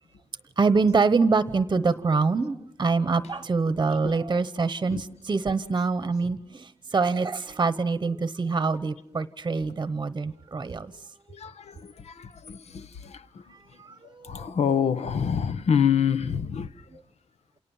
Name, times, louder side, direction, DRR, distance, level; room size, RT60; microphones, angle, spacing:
voice 1, 0.6-10.9 13.8-14.5, right 4 dB, 30° right, 1.0 m, -25 dB
voice 2, 11.4-13.2 14.2-16.7, left 7 dB, 75° left, 1.1 m, -26 dB
29.0 x 28.0 x 7.3 m
wide cardioid pair, 155°, 11 cm